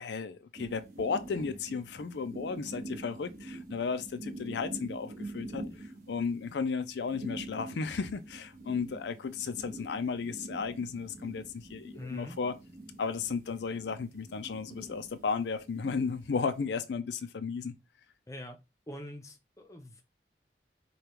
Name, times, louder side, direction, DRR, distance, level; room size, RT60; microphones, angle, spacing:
voice 1, 0.0-12.6 13.0-17.8, left 5 dB, 80° left, 0.4 m, -34 dB
sound 1, 0.6-16.7, right 2 dB, 50° right, 1.2 m, -46 dB
voice 2, 11.9-12.4 18.3-18.6 18.9-20.0, left 1 dB, 20° left, 0.6 m, -44 dB
5.0 x 2.3 x 3.0 m
head